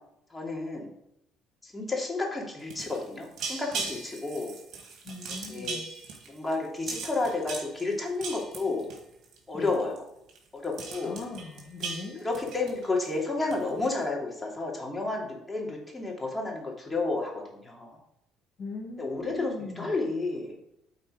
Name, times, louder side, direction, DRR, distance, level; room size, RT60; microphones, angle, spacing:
voice 1, 0.3-0.9 1.6-4.5 5.3-5.8 6.3-8.8 9.5-10.0 10.5-11.1 12.2-18.0 19.0-20.6, left 3 dB, 15° left, -2 dB, 2.8 m, -31 dB
sound 1, 2.6-9.4 9.7-10.0 10.3-10.4 10.6-13.1 13.5-13.8, right 4 dB, 55° right, 2.1 m, -39 dB
voice 2, 5.1-5.9 9.5-9.7 11.1-12.2 18.6-19.9, left 3 dB, 50° left, 1 dB, 1.9 m, -39 dB
8.1 x 4.3 x 5.0 m, 0.79 s
hypercardioid pair, 60°, 0 cm